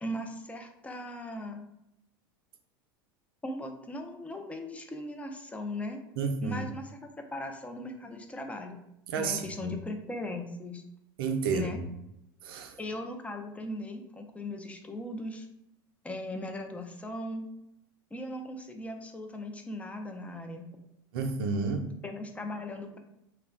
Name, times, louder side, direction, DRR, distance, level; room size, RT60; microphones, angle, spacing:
voice 1, 0.0-1.6 3.4-6.0 6.4-6.9 7.2-8.8 9.2-10.8 11.5-11.8 12.8-15.5 16.0-17.5 18.1-20.7 22.0-23.0, left 1 dB, 10° left, 4 dB, 0.4 m, -38 dB
voice 2, 6.2-6.7 9.1-9.7 11.2-11.7 12.4-12.8 21.1-21.9, right 4 dB, 80° right, 5 dB, 0.5 m, -31 dB
2.2 x 2.1 x 3.6 m, 0.83 s
hypercardioid pair, 100°, 12 cm